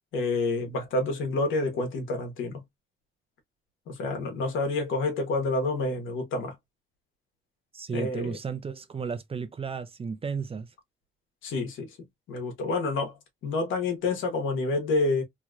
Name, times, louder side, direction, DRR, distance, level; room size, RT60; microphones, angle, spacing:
voice 1, 0.1-2.6 3.9-6.5 7.9-8.4 11.4-12.0 12.3-13.2 13.4-15.2, left 2 dB, 80° left, 1.3 m, -28 dB
voice 2, 7.7-10.7, right 5 dB, 30° right, 0.6 m, -33 dB
3.0 x 2.9 x 2.4 m
cardioid pair, 90°, 20 cm